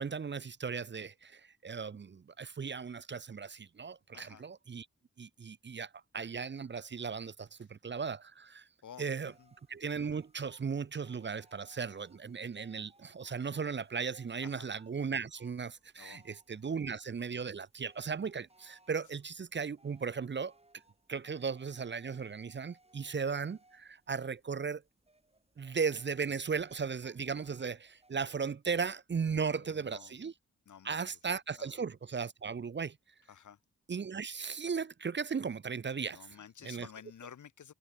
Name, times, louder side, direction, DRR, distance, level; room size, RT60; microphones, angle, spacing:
voice 1, 0.0-4.9 5.2-8.7 9.0-9.3 9.7-20.5 21.1-24.8 25.6-30.3 30.8-33.0 33.9-36.2 36.6-36.9, right 5 dB, 35° right, 0.6 m, -36 dB
sound 1, 9.2-28.1, right 2 dB, 20° right, 3.9 m, -67 dB
voice 2, 29.2-30.1 30.7-31.1 31.6-31.7 33.3-33.6 36.0-37.7, left 8 dB, 70° left, 1.2 m, -52 dB
cardioid pair, 60°, 31 cm